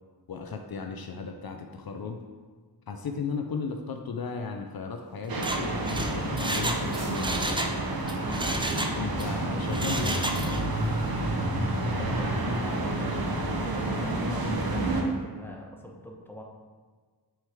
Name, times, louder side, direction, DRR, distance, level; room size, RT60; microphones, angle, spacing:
voice 1, 0.3-2.2 2.9-7.6 8.9-10.6, left 5 dB, 60° left, 5 dB, 0.6 m, -35 dB
Mechanisms, 5.3-7.8 8.1-9.3 9.7-10.7 11.0-11.1, right 2 dB, 10° right, 0.5 m, -32 dB
sound 1, 5.3-15.0, right 1 dB, 60° right, 1.0 m, -29 dB
sound 2, 6.5-7.4 8.2-8.9, right 1 dB, 40° right, 1.3 m, -41 dB
voice 2, 11.9-16.4, equal, 5° left, 1 dB, 0.9 m, -44 dB
6.3 x 4.8 x 3.5 m, 1.5 s
cardioid pair, 55°, 41 cm